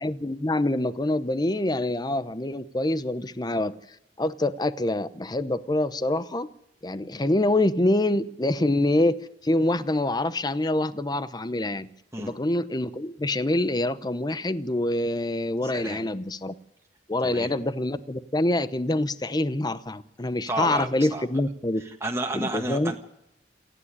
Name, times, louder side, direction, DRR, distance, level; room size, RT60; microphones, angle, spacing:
voice 1, 0.0-3.7 4.2-6.5 6.8-9.2 9.4-11.9 12.2-16.5 17.1-21.8 22.3-22.9, left 1 dB, 25° left, 14 dB, 0.8 m, -25 dB
voice 2, 15.6-16.0 17.2-17.5 20.5-21.3 21.9-23.0, right 2 dB, 15° right, 1 dB, 1.7 m, -31 dB
28.5 x 9.8 x 9.9 m, 0.82 s
head